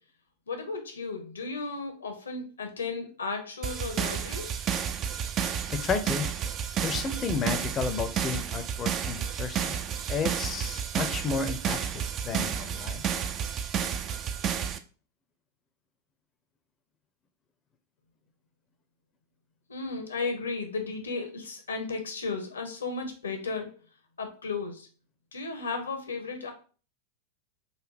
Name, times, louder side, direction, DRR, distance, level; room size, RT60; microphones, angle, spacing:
voice 1, 0.5-4.6 19.7-23.7 24.2-24.9 25.3-26.5, left 4 dB, 70° left, 6 dB, 0.9 m, -34 dB
sound 1, 3.6-14.8, right 8 dB, 30° right, 0.4 m, -31 dB
voice 2, 5.7-6.3 6.8-9.8 10.1-13.0, left 5 dB, 25° left, 8 dB, 0.6 m, -32 dB
4.1 x 2.6 x 4.7 m, 0.38 s
figure-of-eight pair, 90°, 0 cm